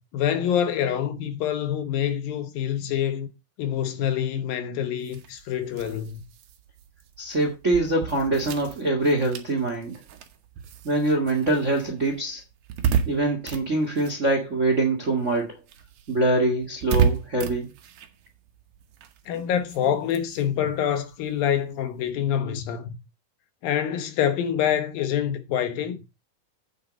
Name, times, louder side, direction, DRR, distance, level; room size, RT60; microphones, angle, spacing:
voice 1, 0.1-3.3 3.6-6.2 19.3-23.0 23.6-26.0, left 9 dB, 75° left, 2.9 m, -26 dB
sound 1, 5.0-14.9 15.2-22.1, right 7 dB, 65° right, 2.3 m, -33 dB
voice 2, 7.2-10.0 10.8-12.4 13.0-15.5 16.1-17.7, right 2 dB, 35° right, 1.3 m, -24 dB
8.7 x 6.7 x 5.1 m
omnidirectional pair, 4.2 m